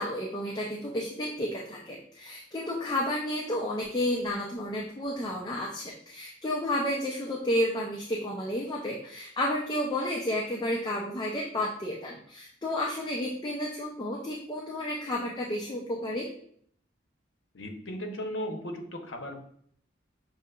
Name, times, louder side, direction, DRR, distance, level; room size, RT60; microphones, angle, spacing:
voice 1, 0.0-16.3, left 1 dB, 20° left, -3 dB, 0.5 m, -31 dB
voice 2, 17.5-19.4, equal, 85° left, 4 dB, 0.8 m, -36 dB
6.2 x 2.8 x 2.3 m, 0.63 s
head